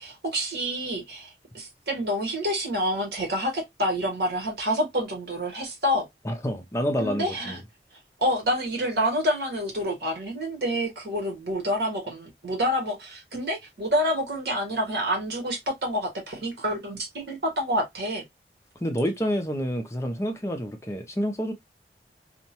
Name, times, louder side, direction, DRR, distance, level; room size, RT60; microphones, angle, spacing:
voice 1, 0.0-6.1 7.0-7.6 8.2-18.2, equal, 65° right, 1.2 m, -28 dB
voice 2, 6.2-7.6 18.8-21.5, equal, 15° left, 0.4 m, -28 dB
4.4 x 2.1 x 2.8 m
head